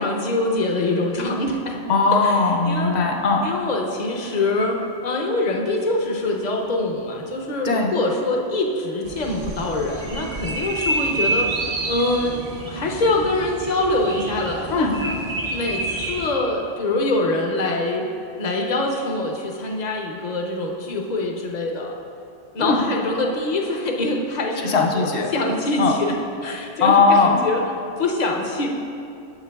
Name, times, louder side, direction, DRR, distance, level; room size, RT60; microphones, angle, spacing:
voice 1, 0.0-1.8 2.6-2.9 3.4-4.8 5.0-11.6 11.9-12.4 12.7-15.1 15.5-18.1 18.4-21.9 22.5-26.1 26.4-27.6 28.0-28.7, left 2 dB, 45° left, 1 dB, 0.7 m, -24 dB
voice 2, 1.9-3.5 7.6-7.9 14.7-14.9 22.6-22.9 24.6-25.3 25.8-25.9 26.8-27.5, left 4 dB, 65° left, 1 dB, 0.9 m, -18 dB
sound 1, 9.0-16.3, right 2 dB, 40° right, 0.6 m, -28 dB
8.0 x 7.5 x 2.3 m, 2.7 s
omnidirectional pair, 1.2 m